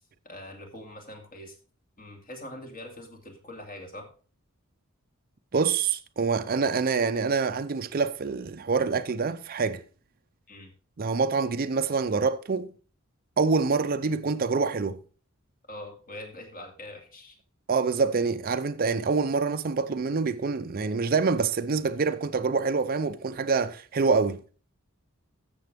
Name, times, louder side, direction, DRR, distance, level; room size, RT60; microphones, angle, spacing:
voice 1, 0.2-1.6 2.0-4.1 10.5-10.7 15.7-17.4, left 1 dB, 40° left, 2.5 m, -43 dB
voice 2, 5.5-9.8 11.0-12.7 13.4-15.0 17.7-24.4, right 4 dB, 45° right, 0.5 m, -26 dB
13.5 x 7.0 x 3.4 m
head